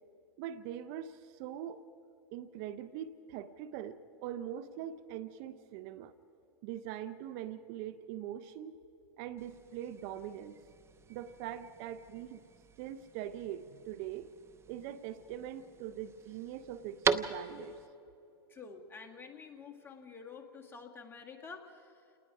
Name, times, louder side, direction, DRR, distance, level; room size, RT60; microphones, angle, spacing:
voice 1, 0.4-1.8 2.3-6.1 6.6-8.7 9.2-10.6 11.1-12.4 12.8-14.3 14.7-17.8, right 10 dB, 55° right, 13 dB, 0.8 m, -42 dB
sound 1, 9.4-17.9, right 6 dB, 20° right, 0.8 m, -40 dB
voice 2, 18.5-22.2, left 5 dB, 15° left, 2 dB, 2.0 m, -49 dB
28.5 x 19.5 x 4.9 m, 2.7 s
hypercardioid pair, 120°, 14 cm